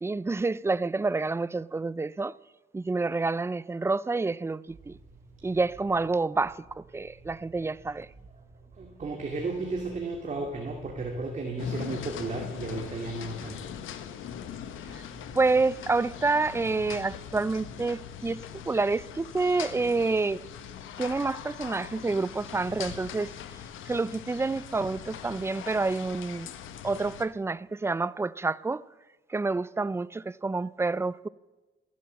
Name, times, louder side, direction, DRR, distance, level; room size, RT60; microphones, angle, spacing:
voice 1, 0.0-2.3 2.7-5.0 5.4-8.1 15.3-20.4 21.0-23.3 23.9-26.5 26.8-28.8 29.3-31.3, right 3 dB, 15° right, 0.4 m, -28 dB
voice 2, 8.7-13.7, right 2 dB, 35° right, 2.3 m, -33 dB
sound 1, 11.6-27.3, left 9 dB, 80° left, 1.2 m, -41 dB
14.5 x 11.0 x 7.4 m
cardioid pair, 90°, 20 cm